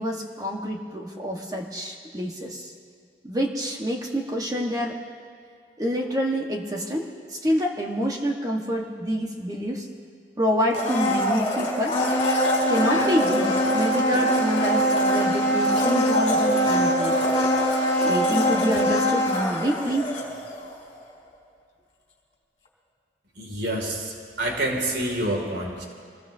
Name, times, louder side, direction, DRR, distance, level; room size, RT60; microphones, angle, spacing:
voice 1, 0.0-2.7 3.2-5.0 5.8-9.9 10.4-12.0 12.7-17.2 18.0-20.1, equal, 20° right, 0 dB, 1.3 m, -27 dB
Domestic sounds home sounds, 10.7-20.7 21.0-21.1, equal, 35° left, 3.6 m, -23 dB
voice 2, 23.4-25.8, right 1 dB, 80° right, 1 dB, 2.5 m, -28 dB
25.0 x 20.0 x 2.7 m, 2.2 s
head